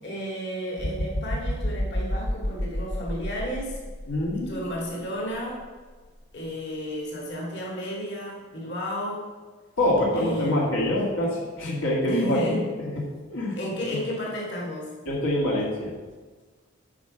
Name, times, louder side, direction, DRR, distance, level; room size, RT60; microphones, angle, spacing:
voice 1, 0.0-3.8 4.3-5.6 6.3-9.3 10.1-10.9 12.0-12.6 13.6-15.0, equal, 55° left, -3 dB, 2.2 m, -32 dB
sound 1, 0.8-4.8 5.3-5.5, left 1 dB, 40° left, 0.6 m, -30 dB
voice 2, 4.1-4.7 9.8-12.6 13.3-13.6 15.1-15.9, left 1 dB, 80° left, -5 dB, 2.2 m, -25 dB
8.8 x 5.8 x 5.7 m, 1.4 s
head